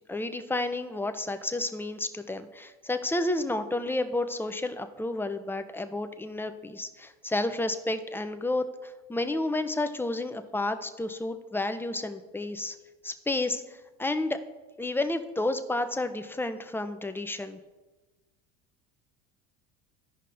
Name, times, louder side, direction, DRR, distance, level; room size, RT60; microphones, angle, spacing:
voice 1, 0.1-12.8 13.0-14.4 14.8-17.6, left 2 dB, 5° left, 8 dB, 0.5 m, -31 dB
15.0 x 5.3 x 2.6 m, 1.2 s
hypercardioid pair, 85°, 38 cm